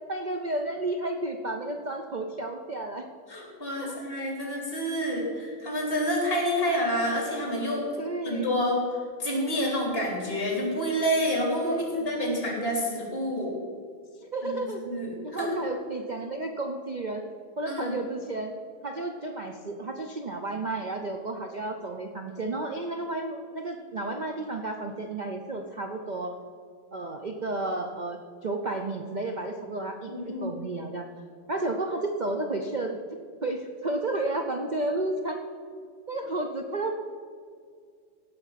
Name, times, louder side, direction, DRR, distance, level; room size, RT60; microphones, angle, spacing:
voice 1, 0.1-3.0 3.8-4.0 4.4-4.5 8.0-8.5 11.6-12.4 14.2-14.8 15.2-17.3 17.6-18.6 18.8-26.3 26.9-31.1 31.5-35.4 36.1-36.9, right 2 dB, 65° right, 3 dB, 0.4 m, -32 dB
voice 2, 3.3-7.8 8.2-8.8 9.2-13.5 14.4-15.5 17.7-18.0 30.1-30.5, equal, 35° left, -1 dB, 3.3 m, -28 dB
16.5 x 6.4 x 5.8 m, 2.1 s
omnidirectional pair, 1.9 m